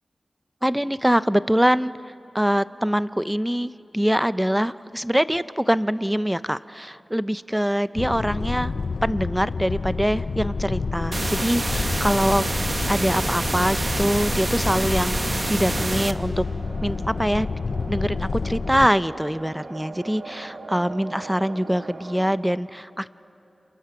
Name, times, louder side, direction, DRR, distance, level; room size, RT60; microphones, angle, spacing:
voice 1, 0.6-1.9 2.3-8.7 9.0-12.4 12.9-16.4 16.8-17.5 17.9-23.1, equal, 5° right, 15 dB, 0.5 m, -24 dB
sound 1, 8.0-18.9, left 4 dB, 70° left, 0.5 m, -29 dB
sound 2, 11.1-16.1, right 2 dB, 40° right, 0.9 m, -27 dB
sound 3, 15.6-22.4, right 3 dB, 70° right, 1.4 m, -40 dB
30.0 x 27.5 x 5.9 m, 2.9 s
wide cardioid pair, 70°, 0 cm